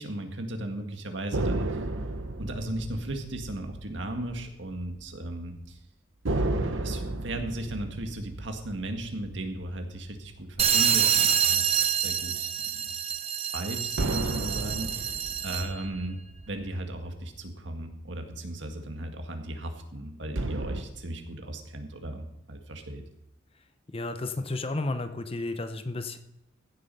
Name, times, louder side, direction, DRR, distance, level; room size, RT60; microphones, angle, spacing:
voice 1, 0.0-1.8 2.4-5.8 6.8-12.5 12.8-12.9 13.5-15.1 15.4-16.2 16.5-23.0, right 1 dB, 65° right, 5 dB, 1.9 m, -36 dB
sound 1, 1.3-5.0 5.3-5.5 6.2-10.9 14.0-17.6 20.4-20.8, right 2 dB, 85° right, 1.1 m, -33 dB
sound 2, 10.6-15.8, right 9 dB, 30° right, 0.6 m, -26 dB
voice 2, 23.9-26.2, left 2 dB, 30° left, 9 dB, 0.7 m, -32 dB
15.5 x 7.5 x 5.4 m, 0.90 s
head